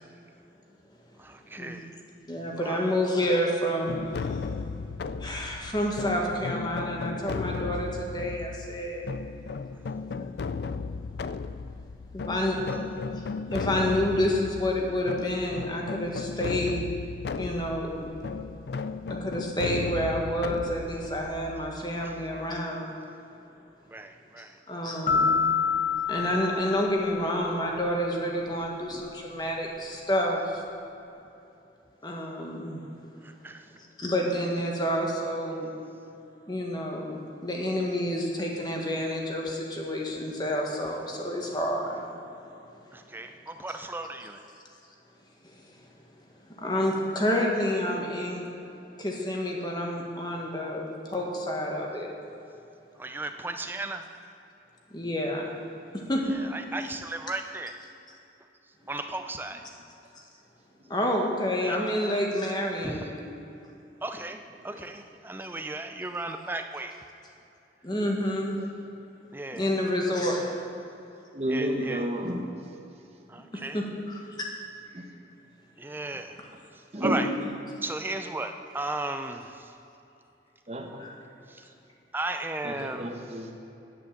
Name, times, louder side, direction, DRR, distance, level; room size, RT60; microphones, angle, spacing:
voice 1, 1.2-1.9 2.6-2.9 12.7-12.8 22.0-22.1 23.9-24.6 28.9-29.0 33.2-33.6 42.9-44.4 53.0-54.1 56.5-57.7 58.9-59.6 61.6-61.8 62.8-63.0 64.0-67.0 69.3-69.7 71.5-72.0 73.3-73.8 75.8-76.4 77.0-77.3 77.8-79.7 81.5-81.7 82.1-83.1, right 2 dB, 10° right, 7 dB, 0.4 m, -35 dB
voice 2, 2.3-4.4 5.2-9.1 12.1-12.6 13.1-16.9 17.3-18.1 18.7-18.8 19.1-23.0 24.7-25.5 26.1-30.6 32.0-32.8 34.0-35.7 36.5-42.1 42.4-42.5 43.2-43.3 45.7-45.9 46.4-48.4 49.0-52.1 54.9-55.5 55.9-56.2 60.9-63.3 67.8-68.6 69.5-70.7 73.7-74.5 81.0-81.1, equal, 25° left, 0 dB, 1.4 m, -29 dB
sound 1, 3.9-22.6, left 4 dB, 65° left, 0.4 m, -35 dB
sound 2, 25.1-27.8, left 6 dB, 45° left, 0.9 m, -27 dB
voice 3, 64.5-64.9 68.0-68.3 71.3-72.4 74.9-75.1 76.1-76.2 76.5-76.6 76.9-77.3 80.7-81.1 82.6-83.5, equal, 35° right, 2 dB, 1.1 m, -31 dB
9.3 x 8.3 x 7.4 m, 2.8 s
head